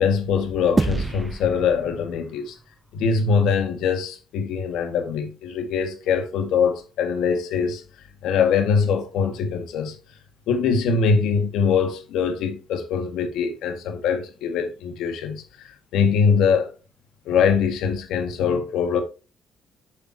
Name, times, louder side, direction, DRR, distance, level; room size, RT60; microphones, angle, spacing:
voice 1, 0.0-2.6 2.9-7.8 8.2-10.0 10.5-16.7 17.3-19.0, left 6 dB, 85° left, 1.7 m, -23 dB
sound 1, 0.8-3.4, right 3 dB, 20° right, 0.3 m, -28 dB
8.4 x 5.8 x 2.8 m
cardioid pair, 90°, 0 cm